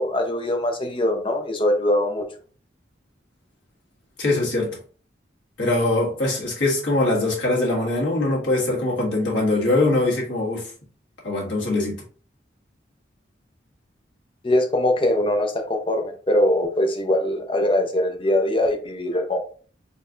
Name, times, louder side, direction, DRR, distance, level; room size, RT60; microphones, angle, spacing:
voice 1, 0.0-2.2 14.4-19.4, left 1 dB, 30° left, 0.6 m, -22 dB
voice 2, 4.2-4.8 5.6-10.7 11.2-12.0, left 2 dB, 80° left, 1.7 m, -22 dB
4.1 x 3.3 x 2.5 m
head